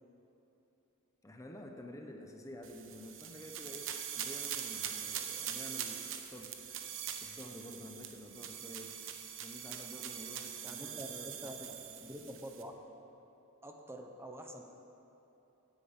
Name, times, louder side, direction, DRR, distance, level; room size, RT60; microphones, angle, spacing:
voice 1, 1.2-6.6 7.2-9.0 9.4-12.4 13.2-13.3, left 1 dB, 15° left, 3 dB, 0.7 m, -50 dB
sound 1, 2.6-12.6, right 9 dB, 60° right, 0.9 m, -43 dB
voice 2, 10.6-11.8 12.1-12.7 13.6-14.6, equal, 10° right, 3 dB, 0.8 m, -47 dB
9.9 x 8.8 x 8.4 m, 3.0 s
head